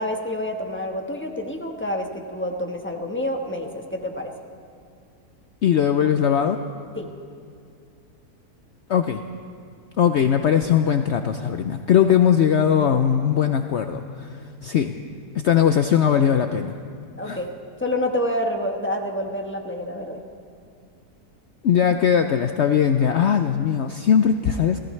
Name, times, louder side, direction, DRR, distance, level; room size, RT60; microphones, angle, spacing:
voice 1, 0.0-4.3 6.9-7.1 17.2-17.5 17.8-20.2, left 1 dB, 10° left, 2 dB, 1.0 m, -28 dB
voice 2, 5.6-6.6 8.9-9.2 10.0-14.3 14.6-15.0 15.3-16.8 17.3-17.4 21.6-24.8, left 8 dB, 65° left, 7 dB, 0.7 m, -20 dB
30.0 x 15.0 x 3.2 m, 2.3 s
omnidirectional pair, 1.6 m